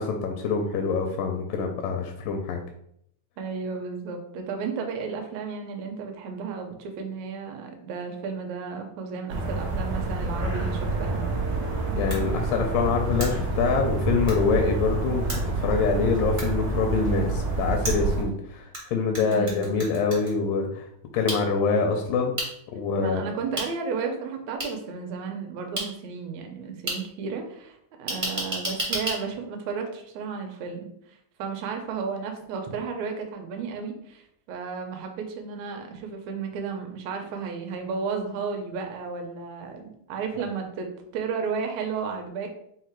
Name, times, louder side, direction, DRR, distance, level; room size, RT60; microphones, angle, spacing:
voice 1, 0.0-2.6 12.0-15.3 15.6-20.8 21.1-22.3 22.7-23.3, left 5 dB, 85° left, 2 dB, 2.2 m, -25 dB
voice 2, 3.4-11.4 19.2-19.9 23.0-40.9 41.1-42.5, right 5 dB, 75° right, 4 dB, 1.8 m, -33 dB
sound 1, 9.3-18.2, right 3 dB, 90° right, 1.2 m, -28 dB
sound 2, 12.1-12.2 13.2-13.3 14.3-14.4 15.3-15.4 16.4-16.5 17.8-18.8 19.1-20.3 21.3-21.4 22.4-22.5 23.6-23.7 24.6-24.7 25.8-25.9 26.9-27.0 28.1-29.2, right 1 dB, 55° right, 0.5 m, -30 dB
5.6 x 2.0 x 4.4 m, 0.72 s
omnidirectional pair, 3.7 m